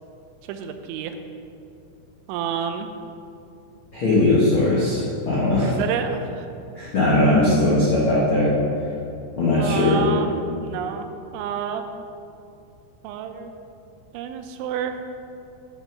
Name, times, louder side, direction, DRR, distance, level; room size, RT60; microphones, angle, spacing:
voice 1, 0.5-1.2 2.3-2.9 5.6-6.5 9.6-11.1 11.3-11.8 13.0-13.5 14.1-15.0, right 8 dB, 85° right, 7 dB, 3.0 m, -29 dB
voice 2, 3.9-5.8 6.7-8.5 9.4-10.0, left 2 dB, 65° left, -8 dB, 1.2 m, -19 dB
12.0 x 6.0 x 5.3 m, 2.6 s
omnidirectional pair, 5.3 m